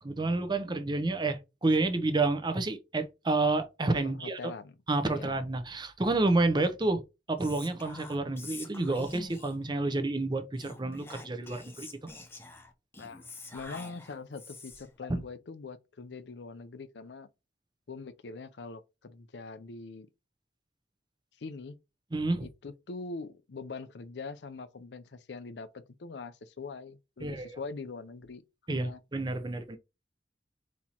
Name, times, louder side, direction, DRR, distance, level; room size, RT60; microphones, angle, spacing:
voice 1, 0.0-4.5 4.9-7.0 7.3-11.9 15.1-15.2 22.1-22.5 27.2-27.6 28.7-29.8, right 2 dB, 25° right, 0.6 m, -29 dB
voice 2, 4.0-4.7 5.1-5.4 13.0-13.3 13.5-17.3 17.9-20.1 21.4-21.8 22.4-28.4 28.7-29.0, left 4 dB, 70° left, 0.5 m, -43 dB
Whispering, 7.4-9.7 10.5-15.0, left 2 dB, 15° left, 0.7 m, -47 dB
4.2 x 4.2 x 2.9 m
head